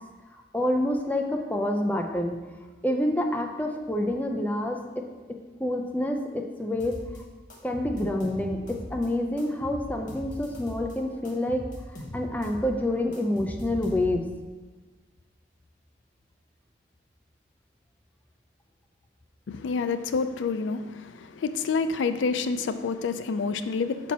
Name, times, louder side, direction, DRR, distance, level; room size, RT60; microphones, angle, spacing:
voice 1, 0.5-2.4 2.8-5.1 5.6-7.0 7.6-11.6 12.1-14.2, left 1 dB, 10° left, 2 dB, 0.4 m, -27 dB
sound 1, 6.8-7.2 7.5-9.1 9.4-10.9 11.2-14.3, equal, 45° left, 1.0 m, -40 dB
voice 2, 19.5-24.1, left 4 dB, 80° left, 11 dB, 0.4 m, -28 dB
5.8 x 4.4 x 4.1 m, 1.3 s
head